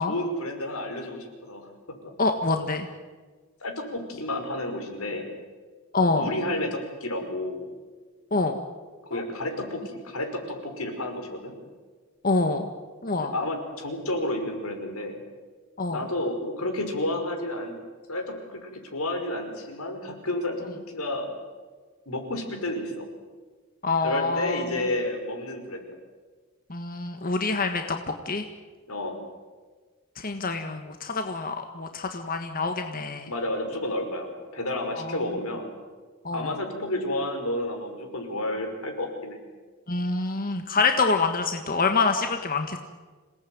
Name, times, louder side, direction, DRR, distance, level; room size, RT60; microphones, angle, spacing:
voice 1, 0.0-2.1 3.6-5.3 6.0-7.7 9.1-11.5 13.2-15.2 15.9-17.8 18.1-21.3 22.1-23.1 24.0-25.9 28.9-29.2 33.3-35.7 36.3-39.4, left 1 dB, 85° left, 4 dB, 5.5 m, -31 dB
voice 2, 2.2-2.9 5.9-6.3 8.3-8.6 9.1-9.2 12.2-12.7 13.0-13.3 15.8-16.0 23.8-24.7 26.7-28.0 28.3-28.4 30.2-33.3 35.0-35.2 36.2-36.6 39.9-42.8, left 3 dB, 40° left, 6 dB, 1.6 m, -26 dB
27.0 x 18.5 x 9.5 m, 1.4 s
head